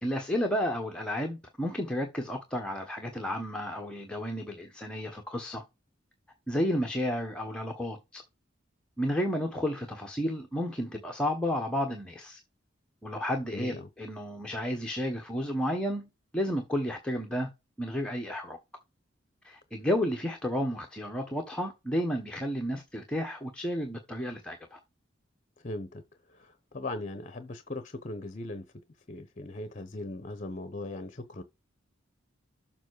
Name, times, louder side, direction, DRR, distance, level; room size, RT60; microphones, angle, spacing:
voice 1, 0.0-5.6 6.5-8.2 9.0-12.4 13.0-17.5 17.8-18.6 19.4-24.8, equal, 5° left, 1.2 m, -32 dB
voice 2, 13.5-13.9 25.6-26.0 26.3-28.6 29.1-31.4, left 2 dB, 40° left, 0.8 m, -39 dB
7.3 x 5.5 x 4.8 m
head